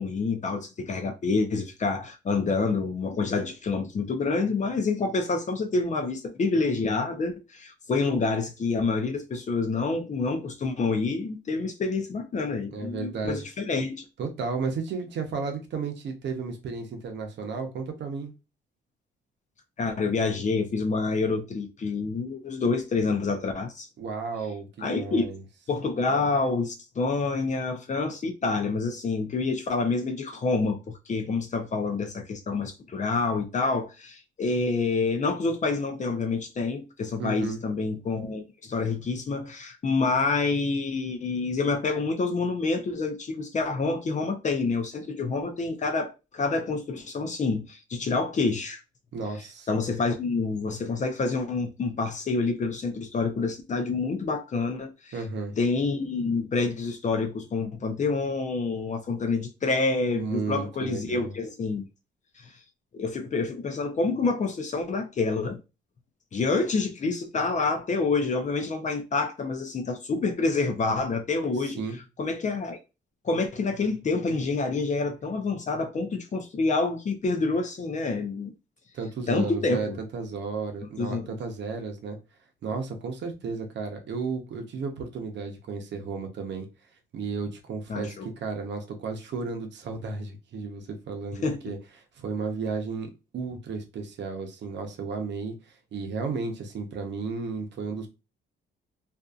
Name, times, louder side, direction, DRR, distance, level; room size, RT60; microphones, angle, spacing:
voice 1, 0.0-14.0 19.8-23.9 24.8-25.3 25.7-48.8 49.7-55.1 55.6-61.9 62.4-62.5 62.9-65.6 66.3-71.8 72.2-72.8 73.2-78.5 79.3-80.0 81.0-81.4 87.9-88.3 91.4-91.6, left 3 dB, 40° left, 0.6 m, -27 dB
voice 2, 12.7-13.4 14.2-18.3 24.0-25.4 37.2-37.6 49.1-49.7 55.1-55.5 60.1-61.3 71.8-72.0 78.9-82.2 82.6-86.7 87.1-91.8 92.2-98.1, right 4 dB, 65° right, 0.8 m, -33 dB
2.6 x 2.5 x 2.4 m
cardioid pair, 90°, 20 cm